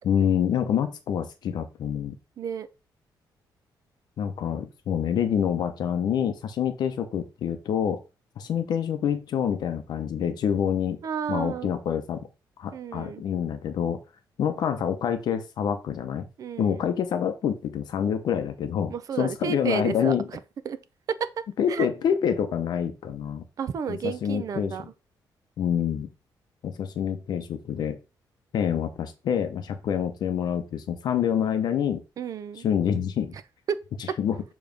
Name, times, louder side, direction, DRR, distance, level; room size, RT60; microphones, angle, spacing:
voice 1, 0.1-2.2 4.2-8.0 8.4-11.0 11.3-12.2 12.6-14.0 14.4-16.3 16.6-20.3 21.6-23.4 23.9-24.7 25.6-26.1 26.6-28.0 28.5-32.0 32.6-33.4 34.2-34.4, left 8 dB, 60° left, 0.7 m, -27 dB
voice 2, 2.4-2.7 11.0-11.7 12.7-13.2 16.4-16.8 18.9-20.4 20.6-20.8 21.1-21.3 21.7-21.9 23.6-24.8 32.2-32.7 33.7-33.8, right 7 dB, 45° right, 0.5 m, -31 dB
6.9 x 3.1 x 5.1 m
cardioid pair, 180°, 8 cm